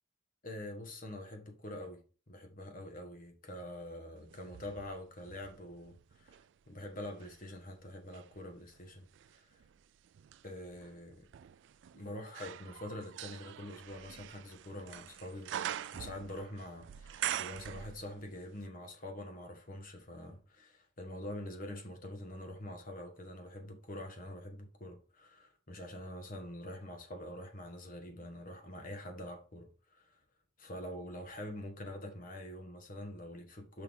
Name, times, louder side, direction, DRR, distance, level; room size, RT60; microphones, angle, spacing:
voice 1, 0.4-6.4 6.7-9.1 9.3-9.6 10.4-11.3 11.9-15.5 15.9-30.2 30.6-33.8, left 1 dB, 45° left, 1.4 m, -45 dB
sound 1, 4.3-6.5 7.0-18.4 18.6-18.7, right 11 dB, 60° right, 0.3 m, -44 dB
6.4 x 5.5 x 3.6 m
head